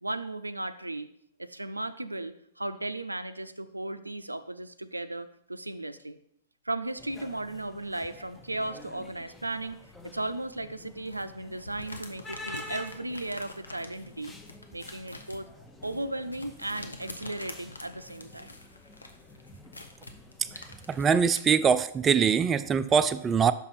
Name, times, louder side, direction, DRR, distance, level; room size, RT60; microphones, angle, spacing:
voice 1, 0.0-1.1 1.4-6.2 6.7-9.8 10.1-14.3 14.7-15.5 15.8-18.5, right 2 dB, 90° right, 11 dB, 0.4 m, -36 dB
sound 1, 7.0-21.0, left 1 dB, 10° left, 0.8 m, -49 dB
sound 2, 11.1-21.5, left 2 dB, 85° left, 0.8 m, -46 dB
voice 2, 20.9-23.5, right 6 dB, 20° right, 11 dB, 0.3 m, -23 dB
6.0 x 5.4 x 4.2 m, 0.73 s
figure-of-eight pair, 105°, 0 cm